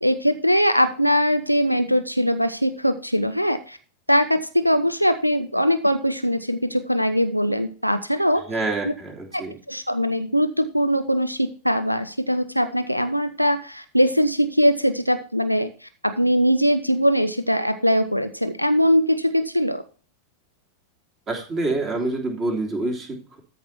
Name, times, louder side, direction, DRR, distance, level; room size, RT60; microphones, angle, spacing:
voice 1, 0.0-3.8 4.1-8.4 8.8-8.9 9.3-9.4 9.7-15.7 16.0-19.8, equal, 90° right, 11 dB, 0.7 m, -21 dB
voice 2, 8.5-9.6 21.3-23.4, right 2 dB, 25° right, 2 dB, 3.2 m, -27 dB
13.5 x 5.3 x 4.4 m, 0.39 s
figure-of-eight pair, 90°, 0 cm